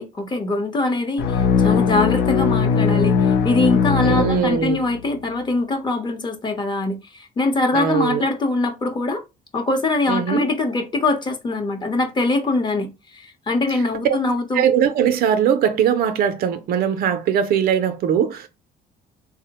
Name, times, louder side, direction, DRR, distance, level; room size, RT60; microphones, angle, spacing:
voice 1, 0.0-9.2 9.5-14.7, left 2 dB, 25° left, 0.8 m, -23 dB
sound 1, 1.2-5.0, left 6 dB, 90° left, 0.6 m, -19 dB
voice 2, 4.0-4.8 7.7-8.2 10.1-10.5 14.0-14.2 14.5-18.5, right 8 dB, 65° right, 0.5 m, -20 dB
3.6 x 2.0 x 2.8 m
cardioid pair, 110°, 17 cm